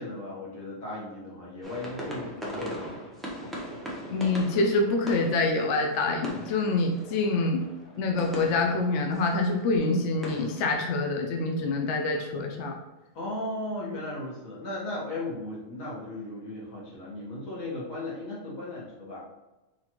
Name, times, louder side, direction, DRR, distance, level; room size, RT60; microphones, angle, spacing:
voice 1, 0.0-3.0 13.1-19.2, left 2 dB, 85° left, -6 dB, 1.7 m, -36 dB
sound 1, 1.6-10.7, right 1 dB, ahead, 0.5 m, -40 dB
voice 2, 4.1-7.7 8.0-12.7, left 3 dB, 70° left, 2 dB, 0.8 m, -26 dB
3.9 x 3.1 x 2.9 m, 1.1 s
omnidirectional pair, 1.4 m